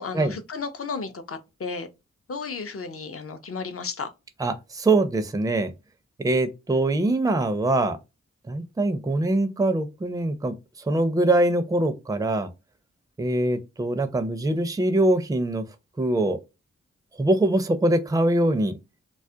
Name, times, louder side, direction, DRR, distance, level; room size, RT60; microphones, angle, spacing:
voice 1, 0.0-1.9 2.3-4.1, left 4 dB, 50° left, 0.5 m, -33 dB
voice 2, 4.4-5.7 6.2-8.0 8.5-10.5 10.8-12.5 13.2-15.6 16.0-16.4 17.2-18.8, right 2 dB, 10° right, 0.4 m, -23 dB
2.3 x 2.0 x 2.6 m
cardioid pair, 45°, 29 cm